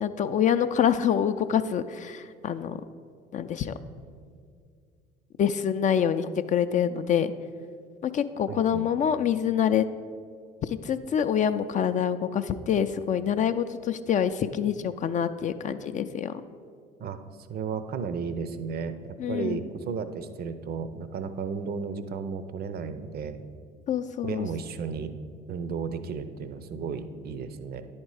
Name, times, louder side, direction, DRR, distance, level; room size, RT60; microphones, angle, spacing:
voice 1, 0.0-2.8 3.3-3.8 5.4-7.3 8.0-9.9 10.6-16.4 19.2-19.6 23.9-24.5, left 8 dB, 35° left, 10 dB, 0.4 m, -26 dB
voice 2, 8.5-8.9 17.0-17.2 17.5-23.4 24.2-25.1 25.5-27.8, right 5 dB, 50° right, 11 dB, 0.6 m, -34 dB
10.0 x 4.4 x 4.8 m, 2.1 s
hypercardioid pair, 65°, 21 cm